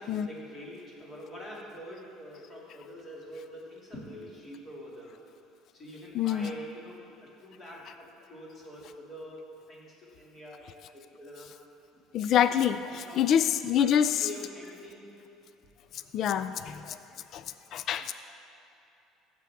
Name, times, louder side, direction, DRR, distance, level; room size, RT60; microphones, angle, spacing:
voice 1, 0.0-5.2 5.7-10.7 10.9-11.5 11.9-12.0 12.8-13.2 13.8-13.9 14.2-15.1, equal, 30° left, -4 dB, 2.4 m, -45 dB
voice 2, 6.1-6.5 12.1-14.3 16.1-17.0 17.3-17.4 17.7-18.1, left 9 dB, 50° left, 12 dB, 0.3 m, -26 dB
15.0 x 7.3 x 3.6 m, 3.0 s
cardioid pair, 135°, 0 cm